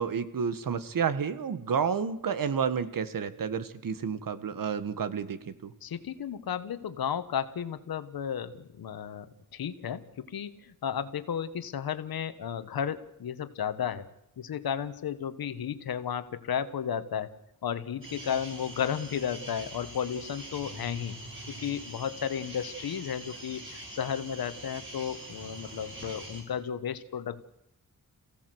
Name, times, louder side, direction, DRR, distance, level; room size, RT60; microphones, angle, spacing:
voice 1, 0.0-5.7, right 6 dB, 70° right, 13 dB, 1.6 m, -30 dB
voice 2, 5.8-9.3 9.5-14.1 14.4-17.3 17.6-27.4, left 8 dB, 85° left, 11 dB, 1.4 m, -33 dB
sound 1, 18.0-26.4, right 1 dB, 35° right, 6.5 m, -44 dB
27.5 x 16.5 x 7.9 m, 0.84 s
wide cardioid pair, 140°, 35 cm